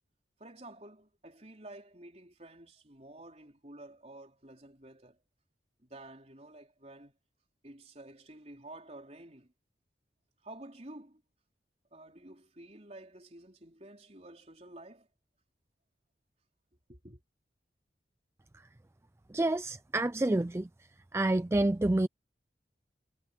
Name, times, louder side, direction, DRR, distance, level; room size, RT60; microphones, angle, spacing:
voice 1, 0.4-5.2 5.8-7.1 7.6-9.5 10.4-11.2 11.9-15.1 16.9-17.2, right 1 dB, 35° right, 3.9 m, -51 dB
voice 2, 19.3-20.7 21.1-22.1, right 2 dB, 15° right, 0.4 m, -28 dB
head